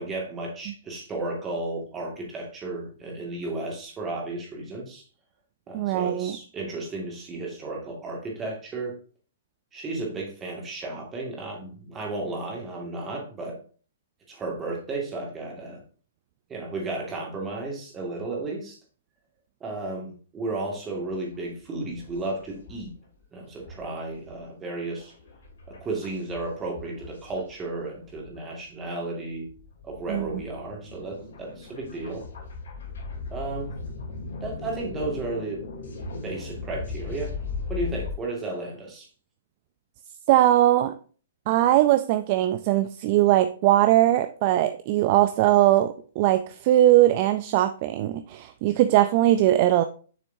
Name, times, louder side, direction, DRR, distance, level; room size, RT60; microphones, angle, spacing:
voice 1, 0.0-5.0 5.7-9.0 9.7-13.6 14.3-15.8 16.5-18.8 19.6-22.9 23.3-25.1 25.7-29.5 29.8-32.3 33.3-33.7 34.4-35.6 36.2-37.3 37.7-39.1, right 2 dB, 15° right, -1 dB, 1.9 m, -33 dB
voice 2, 5.7-6.3 30.1-30.3 40.3-40.9 41.5-49.8, right 14 dB, 35° right, 10 dB, 0.4 m, -20 dB
sound 1, 20.9-21.3 21.7-22.9 23.2-23.3 23.5-28.4 28.8-28.9 29.3-38.1, left 4 dB, 75° left, 2.9 m, -38 dB
7.0 x 6.1 x 2.6 m, 0.40 s
hypercardioid pair, 155°, 0 cm